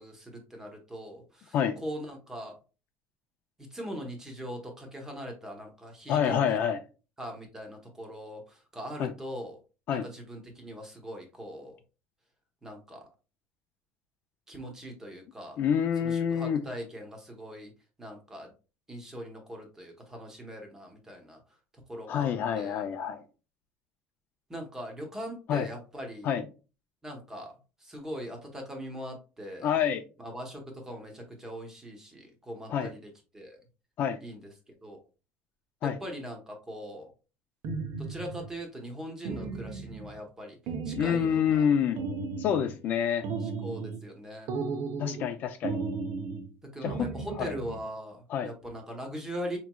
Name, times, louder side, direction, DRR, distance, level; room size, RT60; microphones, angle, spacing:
voice 1, 0.0-2.6 3.7-6.6 7.2-9.6 9.9-11.8 12.6-13.1 14.5-15.6 16.0-17.7 18.0-18.5 18.9-21.4 21.7-22.8 24.5-26.3 27.0-27.5 27.8-29.7 30.2-33.6 34.2-35.0 35.8-37.1 38.0-40.6 40.8-41.7 43.4-44.5 46.7-49.6, equal, 10° right, 0.9 m, -41 dB
voice 2, 6.1-6.8 9.0-9.1 9.9-10.0 15.6-16.6 22.1-23.2 25.5-25.7 26.2-26.4 29.6-30.0 32.7-32.9 34.0-34.2 35.8-36.0 40.9-42.0 42.4-43.3 45.0-45.8 46.8-47.1 47.4-47.5 48.3-48.5, left 8 dB, 45° left, 0.4 m, -27 dB
sound 1, 37.6-38.5 39.2-40.2 40.7-41.6 42.0-42.8 43.2-44.1 44.5-45.3 45.6-46.5 46.9-47.8, right 4 dB, 55° right, 0.7 m, -35 dB
4.7 x 3.0 x 2.2 m
cardioid pair, 160°, 5 cm